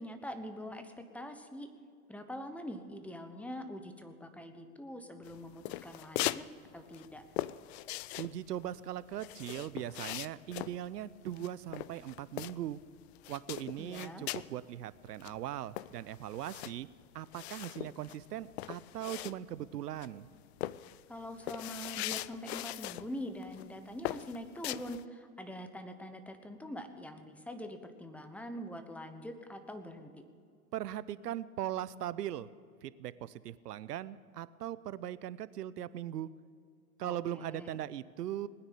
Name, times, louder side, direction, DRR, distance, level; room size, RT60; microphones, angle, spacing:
voice 1, 0.0-1.7 2.1-6.5 6.7-7.2 13.8-14.3 21.1-30.1 37.0-37.8, equal, 5° left, 8 dB, 1.0 m, -44 dB
sound 1, 5.3-6.5 6.7-12.8 13.2-14.5 14.9-15.0 15.2-19.7 20.0-20.3 20.6-23.1 23.4-23.7 24.0-25.0, left 16 dB, 45° left, 0.4 m, -40 dB
voice 2, 8.2-12.8 13.3-16.9 17.1-20.3 30.7-32.5 32.8-36.3 37.0-38.5, right 12 dB, 80° right, 17 dB, 0.8 m, -39 dB
19.5 x 9.8 x 7.0 m, 2.2 s
hypercardioid pair, 115°, 47 cm